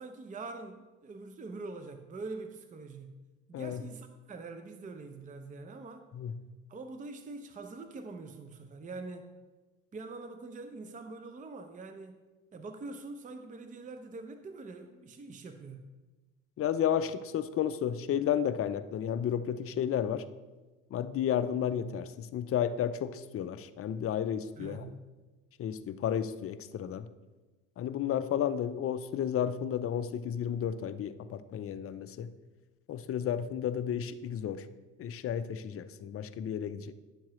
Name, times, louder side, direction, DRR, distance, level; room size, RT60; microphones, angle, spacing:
voice 1, 0.0-3.2 3.5-6.0 6.7-9.3 9.9-12.2 12.5-15.9 24.6-25.0, right 3 dB, 20° right, 8 dB, 0.7 m, -44 dB
voice 2, 3.5-3.8 6.1-6.3 16.6-20.3 20.9-24.9 25.6-27.1 27.8-32.3 32.9-34.7 35.0-36.9, left 9 dB, 35° left, 12 dB, 0.6 m, -32 dB
10.5 x 7.2 x 3.1 m, 1.2 s
hypercardioid pair, 70°, 38 cm